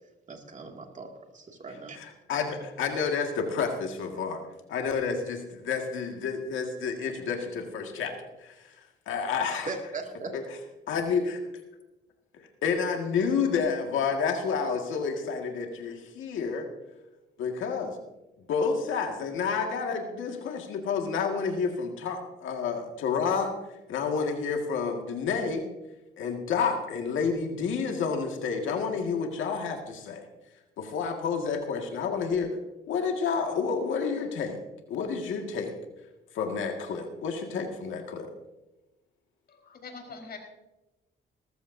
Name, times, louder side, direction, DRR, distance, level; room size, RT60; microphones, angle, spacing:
voice 1, 0.3-2.0 9.7-10.4, right 3 dB, 40° right, 3 dB, 2.4 m, -39 dB
voice 2, 2.0-4.4 4.7-8.1 8.4-9.7 10.3-10.4 10.9-11.4 12.4-16.7 17.4-17.9 18.5-23.5 23.9-25.6 26.2-30.3 30.8-32.5 32.9-34.6 34.9-35.7 36.3-38.3, left 5 dB, 80° left, 3 dB, 1.9 m, -30 dB
voice 3, 39.5-40.4, left 4 dB, 50° left, 3 dB, 4.4 m, -43 dB
19.0 x 14.0 x 2.7 m, 1.0 s
cardioid pair, 90°, 20 cm